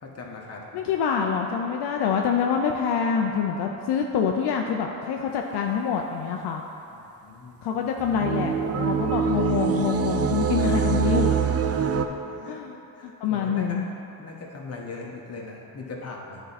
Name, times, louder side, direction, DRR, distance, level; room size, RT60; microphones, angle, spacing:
voice 1, 0.0-0.9 6.9-7.6 10.6-10.8 11.3-11.4 12.0-12.6 12.9-13.8 14.2-16.4, left 3 dB, 35° left, -2 dB, 1.3 m, -40 dB
voice 2, 0.7-6.6 7.6-11.3 12.5-13.9, left 7 dB, 75° left, 2 dB, 0.6 m, -26 dB
sound 1, 8.0-12.1, right 7 dB, 40° right, 0.5 m, -24 dB
10.0 x 4.5 x 4.1 m, 2.9 s
cardioid pair, 100°, 41 cm